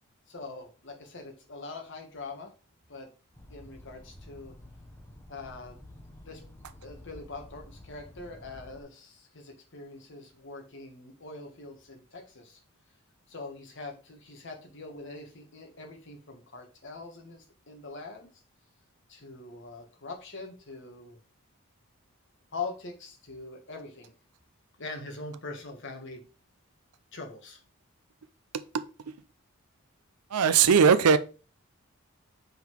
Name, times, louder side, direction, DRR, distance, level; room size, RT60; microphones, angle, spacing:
voice 1, 0.3-2.5 2.9-3.1 3.5-4.5 5.3-5.8 6.2-6.4 6.8-12.6 13.3-18.3 19.1-21.2 22.5-24.1 24.8-26.3 27.1-27.6, left 3 dB, 55° left, 1.4 m, -43 dB
sound 1, 3.3-8.8, left 1 dB, 10° left, 0.8 m, -50 dB
voice 2, 30.3-31.2, right 6 dB, 90° right, 0.5 m, -19 dB
5.5 x 3.9 x 4.5 m
head